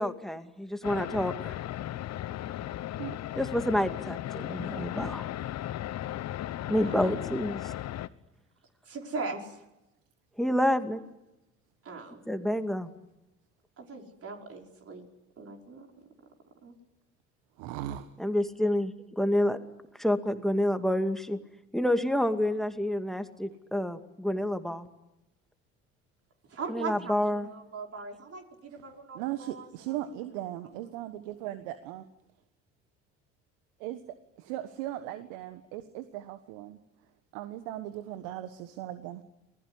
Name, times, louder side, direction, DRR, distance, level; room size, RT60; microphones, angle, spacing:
voice 1, 0.0-1.6 3.3-5.3 6.7-7.7 10.4-11.1 12.3-12.9 18.2-19.6 20.0-21.4 21.7-24.9 26.7-27.5, left 1 dB, ahead, 8 dB, 2.4 m, -28 dB
sound 1, 0.8-8.1, left 13 dB, 50° left, 1.2 m, -36 dB
voice 2, 8.8-9.6 11.8-12.2 13.8-15.1 15.4-15.9 16.6-16.7 26.5-30.0 30.4-30.7, right 4 dB, 40° right, 2 dB, 5.5 m, -40 dB
voice 3, 17.6-18.0 29.1-32.0 33.8-34.0 34.4-36.8 37.3-39.2, right 13 dB, 70° right, 11 dB, 1.5 m, -38 dB
28.0 x 20.0 x 9.9 m, 0.93 s
hypercardioid pair, 60°, 35 cm